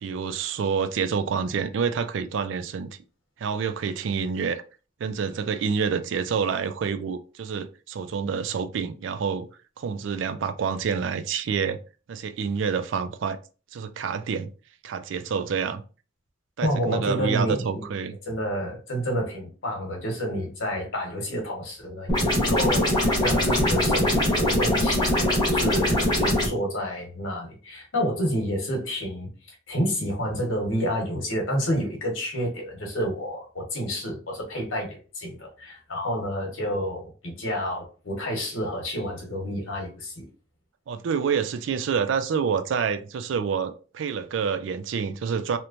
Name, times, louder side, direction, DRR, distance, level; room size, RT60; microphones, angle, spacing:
voice 1, 0.0-2.9 3.4-4.6 5.0-9.5 9.8-11.8 12.1-13.4 13.7-14.5 14.8-15.8 16.6-18.2 40.9-45.6, right 6 dB, 65° right, 0.3 m, -27 dB
voice 2, 16.6-17.8 18.3-29.3 29.7-40.3, equal, 80° left, 1.1 m, -29 dB
sound 1, 22.1-26.5, left 1 dB, 20° left, 1.0 m, -22 dB
3.0 x 2.1 x 2.5 m
head